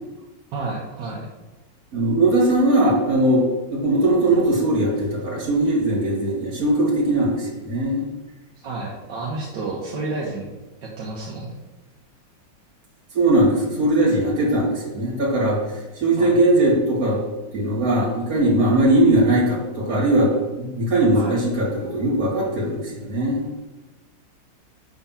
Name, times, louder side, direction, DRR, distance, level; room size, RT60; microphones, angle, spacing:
voice 1, 0.5-1.3 8.6-10.5 10.8-11.6 16.2-16.4 21.1-21.4, right 3 dB, 75° right, -3 dB, 1.6 m, -30 dB
voice 2, 1.9-3.4 3.7-8.1 13.1-15.6 16.0-17.2 17.5-23.4, right 1 dB, 50° right, -3 dB, 2.3 m, -20 dB
6.8 x 3.6 x 5.7 m, 1.1 s
omnidirectional pair, 2.0 m